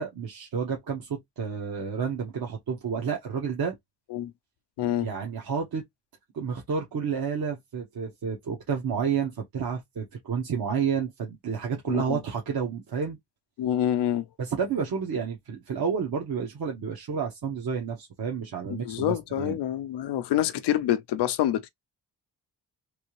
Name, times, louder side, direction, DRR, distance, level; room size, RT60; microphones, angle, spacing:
voice 1, 0.0-3.8 5.0-5.8 6.3-13.2 14.4-19.6, right 6 dB, 60° right, 1.1 m, -30 dB
voice 2, 11.9-12.2 13.6-14.3 18.8-21.7, left 12 dB, 80° left, 0.6 m, -26 dB
3.4 x 2.8 x 3.0 m
cardioid pair, 60°, 40 cm